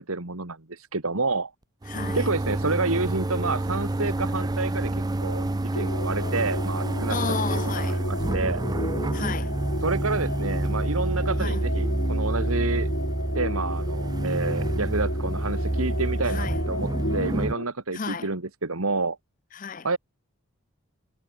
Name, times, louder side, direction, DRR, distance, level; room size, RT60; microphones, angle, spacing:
voice 1, 0.0-1.5 2.1-5.5 5.7-7.2 7.5-7.6 7.9-8.6 9.8-12.9 13.3-19.2 19.8-20.0, right 3 dB, 80° right, 2.3 m, -29 dB
sound 1, 1.8-17.5, right 2 dB, 20° right, 0.4 m, -28 dB
voice 2, 1.9-2.3 7.1-8.0 9.1-9.5 11.4-11.6 16.3-16.6 17.9-18.3 19.5-19.9, left 5 dB, 40° left, 0.6 m, -32 dB
sound 2, 5.7-17.6, left 2 dB, 65° left, 4.3 m, -34 dB
head